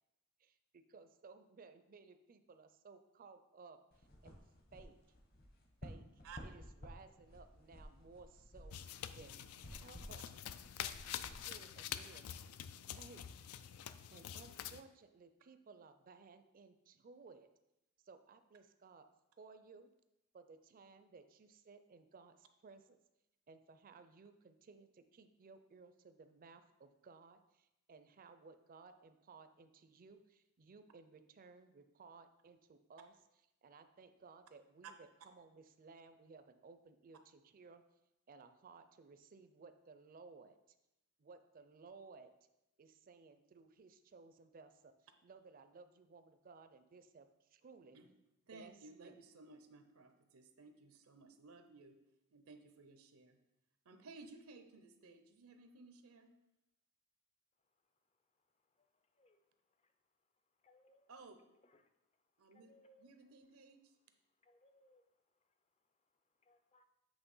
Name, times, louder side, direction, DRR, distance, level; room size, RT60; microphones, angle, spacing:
voice 1, 0.4-4.4 4.7-5.0 5.8-8.8 9.2-9.4 9.7-10.3 11.1-12.3 13.0-13.2 14.1-17.5 18.0-19.1 19.4-19.9 20.3-23.0 23.5-33.1 33.6-37.8 38.3-40.6 41.2-42.3 42.8-44.9 45.2-48.0 48.5-49.2, right 4 dB, 40° right, 10 dB, 0.4 m, -59 dB
sound 1, 3.9-12.4, equal, 45° left, 1.0 m, -55 dB
sound 2, 8.7-14.8, left 10 dB, 85° left, 0.4 m, -47 dB
voice 2, 9.1-9.6 34.8-34.9 47.9-48.1 48.5-52.0 52.3-53.4 53.8-56.3 61.1-61.4 62.4-63.9, right 4 dB, 80° right, 7 dB, 0.7 m, -57 dB
voice 3, 60.6-61.1 62.5-63.1 64.5-65.0 66.5-66.8, left 1 dB, 30° left, 8 dB, 0.5 m, -68 dB
8.1 x 3.2 x 5.4 m, 0.91 s
head